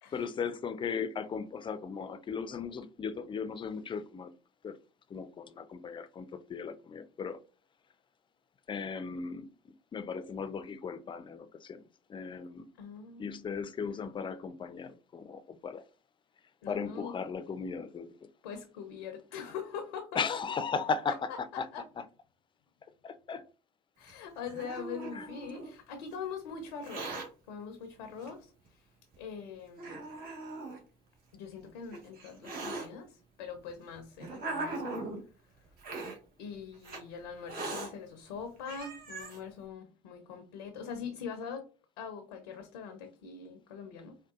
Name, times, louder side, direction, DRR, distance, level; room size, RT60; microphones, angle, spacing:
voice 1, 0.1-4.3 4.6-4.8 5.1-7.4 8.7-9.5 9.9-11.8 12.1-12.6 13.2-15.8 16.7-18.1 20.1-21.3 21.6-21.7 22.0-22.1 23.0-23.4 25.1-25.3, left 5 dB, 25° left, 0.4 m, -36 dB
voice 2, 12.8-13.5 16.6-17.2 18.4-20.2 21.1-21.2 21.7-21.8 24.0-27.1 27.5-28.8 29.2-30.0 31.3-35.0 36.4-41.6 42.0-44.2, left 6 dB, 85° left, 0.5 m, -43 dB
Hiss, 24.1-25.7 26.7-27.3 28.2-28.3 29.1-29.2 29.8-30.8 31.6-32.9 33.7-35.2 35.8-36.2 36.8-37.0 37.5-37.9 38.4-38.5 38.7-39.4, right 2 dB, 55° right, 1.2 m, -39 dB
3.8 x 2.3 x 2.3 m
hypercardioid pair, 65°, 18 cm